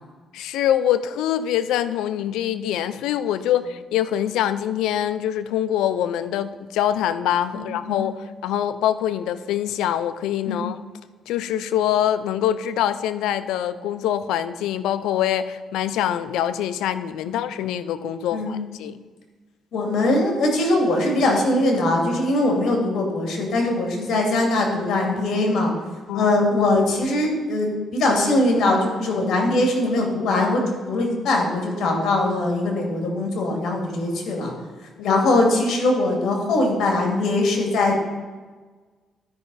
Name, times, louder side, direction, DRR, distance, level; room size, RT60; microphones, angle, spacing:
voice 1, 0.3-10.8 11.3-19.0 26.1-26.3 35.0-35.2, left 11 dB, 90° left, 14 dB, 0.4 m, -24 dB
voice 2, 7.5-8.1 10.5-10.6 17.2-17.3 18.3-18.6 19.7-25.7 26.1-34.5 35.0-38.0, left 2 dB, 70° left, 1 dB, 2.3 m, -21 dB
12.5 x 5.6 x 4.1 m, 1.4 s
cardioid pair, 90°, 0 cm